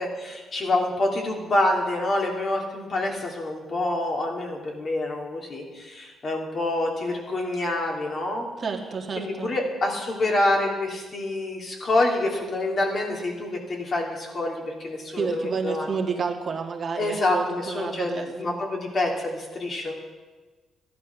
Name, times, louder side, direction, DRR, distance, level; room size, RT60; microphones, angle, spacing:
voice 1, 0.0-8.5 9.2-15.9 17.0-19.9, left 2 dB, 45° left, 0 dB, 3.1 m, -27 dB
voice 2, 8.6-9.5 15.2-18.5, right 5 dB, 45° right, 2 dB, 1.9 m, -30 dB
14.0 x 11.0 x 6.2 m, 1.3 s
cardioid pair, 90°, 0 cm